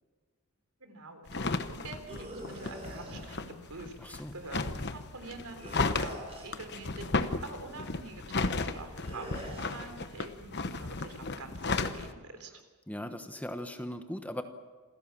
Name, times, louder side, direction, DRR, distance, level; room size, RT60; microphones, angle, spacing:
voice 1, 0.8-12.5, right 3 dB, 80° right, 6 dB, 3.7 m, -46 dB
sound 1, 1.3-12.1, left 3 dB, 50° left, 1.1 m, -34 dB
sound 2, 2.1-3.2 5.6-6.6 9.0-9.7, right 1 dB, 30° right, 6.3 m, -44 dB
voice 2, 4.0-4.3 12.9-14.4, equal, 5° left, 7 dB, 1.1 m, -39 dB
27.5 x 16.5 x 7.5 m, 1.4 s
head